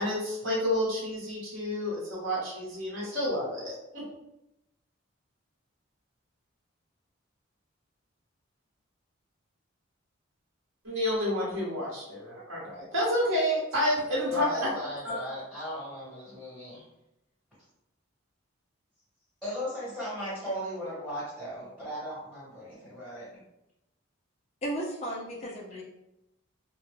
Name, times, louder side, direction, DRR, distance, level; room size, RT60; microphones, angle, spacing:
voice 1, 0.0-4.0 10.8-14.7 15.0-15.1, left 1 dB, 70° right, -6 dB, 1.0 m, -29 dB
voice 2, 14.3-16.9 19.4-23.4 25.4-25.5, equal, ahead, -11 dB, 1.3 m, -37 dB
voice 3, 24.6-25.8, right 1 dB, 30° left, -4 dB, 0.4 m, -34 dB
2.2 x 2.1 x 3.1 m, 0.86 s
head